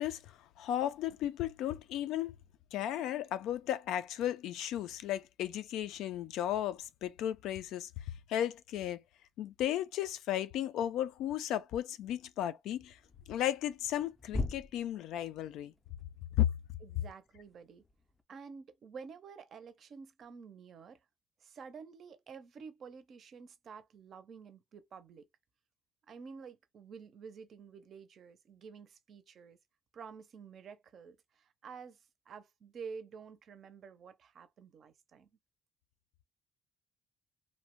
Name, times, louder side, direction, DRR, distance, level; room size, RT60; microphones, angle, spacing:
voice 1, 0.0-2.3 2.7-7.9 8.3-9.0 9.4-13.0 13.3-15.7 16.4-16.5, left 11 dB, 80° left, 0.3 m, -34 dB
sound 1, 12.8-18.2, left 2 dB, 10° left, 0.4 m, -43 dB
voice 2, 16.8-17.8 18.3-21.0 21.4-25.3 26.1-29.6 29.9-32.0 32.3-35.3, right 5 dB, 50° right, 0.5 m, -50 dB
2.6 x 2.1 x 2.9 m
cardioid pair, 125°, 0 cm